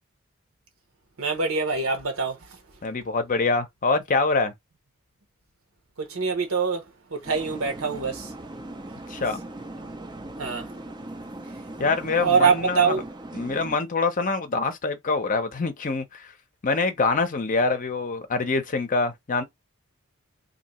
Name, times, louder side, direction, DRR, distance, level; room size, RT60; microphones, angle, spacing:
voice 1, 1.2-2.6 6.0-8.3 10.4-10.7 12.2-13.0, right 5 dB, 70° right, 1.1 m, -24 dB
voice 2, 2.8-4.5 9.1-9.4 11.8-13.0 13.3-16.3 16.6-19.4, left 3 dB, 40° left, 0.7 m, -25 dB
sound 1, 7.2-13.8, right 1 dB, 20° right, 0.5 m, -39 dB
2.8 x 2.6 x 4.1 m
head